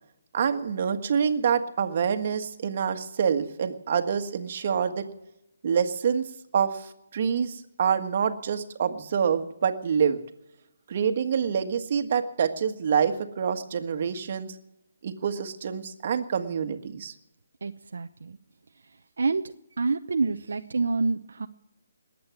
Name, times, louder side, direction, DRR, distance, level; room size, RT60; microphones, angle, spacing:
voice 1, 0.3-5.1 5.6-6.3 6.5-10.2 10.9-14.5 15.0-17.1, right 7 dB, 45° right, 7 dB, 1.6 m, -26 dB
voice 2, 17.6-18.4 19.2-19.4 19.8-21.5, right 4 dB, 70° right, 7 dB, 0.8 m, -27 dB
20.5 x 8.5 x 7.3 m, 0.86 s
hypercardioid pair, 160°, 0 cm